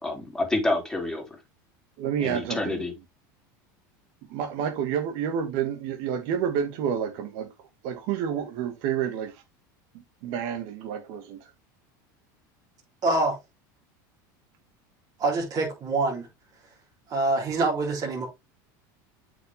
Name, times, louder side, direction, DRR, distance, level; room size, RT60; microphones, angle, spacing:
voice 1, 0.0-1.4 2.2-2.9, left 2 dB, 5° left, 3.1 m, -28 dB
voice 2, 2.0-2.8 4.3-7.5 7.8-9.4 9.9-11.5, right 8 dB, 60° right, 1.8 m, -29 dB
voice 3, 13.0-13.4 15.2-16.3 17.1-18.3, right 2 dB, 40° right, 3.6 m, -25 dB
8.1 x 5.6 x 3.5 m
supercardioid pair, 120°, 10 cm